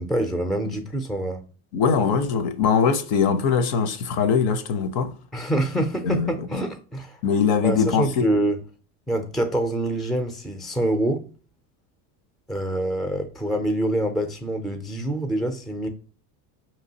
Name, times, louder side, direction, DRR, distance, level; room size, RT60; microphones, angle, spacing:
voice 1, 0.0-1.4 5.3-7.2 7.6-8.6 9.1-11.2 12.5-15.9, right 1 dB, ahead, 0.4 m, -25 dB
voice 2, 1.7-5.1 6.0-6.3 7.2-8.3, left 6 dB, 55° left, 0.7 m, -21 dB
4.8 x 3.0 x 2.7 m
supercardioid pair, 100°, 45 cm